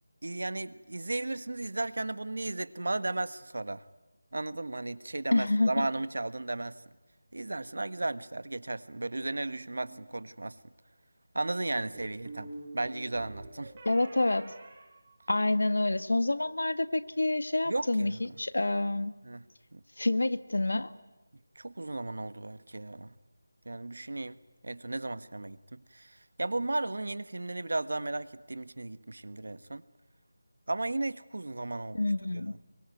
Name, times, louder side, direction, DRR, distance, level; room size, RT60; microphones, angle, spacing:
voice 1, 0.2-3.8 4.3-6.8 7.3-10.6 11.3-13.7 17.7-18.3 19.2-19.4 19.7-19.8 21.5-23.1 23.6-24.3 24.6-29.8 30.7-32.1 32.3-32.4, right 2 dB, 75° right, 15 dB, 1.6 m, -35 dB
voice 2, 5.3-5.9 13.8-14.5 15.3-19.1 20.0-20.9 31.9-32.6, left 2 dB, 80° left, 13 dB, 1.8 m, -28 dB
sound 1, 9.2-10.0 11.9-15.7, right 2 dB, 20° right, 6.3 m, -47 dB
25.0 x 24.0 x 9.4 m, 1.1 s
figure-of-eight pair, 170°, 0 cm